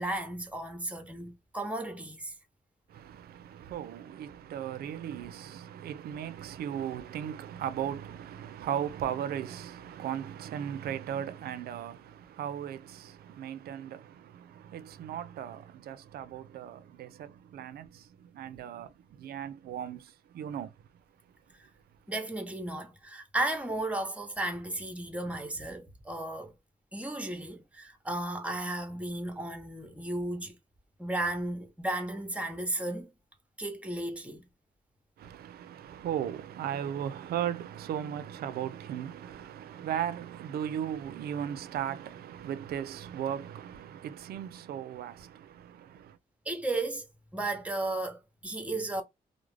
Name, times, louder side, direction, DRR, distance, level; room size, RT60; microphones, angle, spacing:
voice 1, 0.0-2.3 22.1-26.5 26.9-30.6 31.0-33.1 33.6-34.4 46.5-47.0 47.3-49.0, right 2 dB, 10° right, 0.7 m, -34 dB
voice 2, 2.9-20.7 35.2-46.2, right 9 dB, 80° right, 0.4 m, -37 dB
2.4 x 2.0 x 3.1 m
cardioid pair, 90°, 16 cm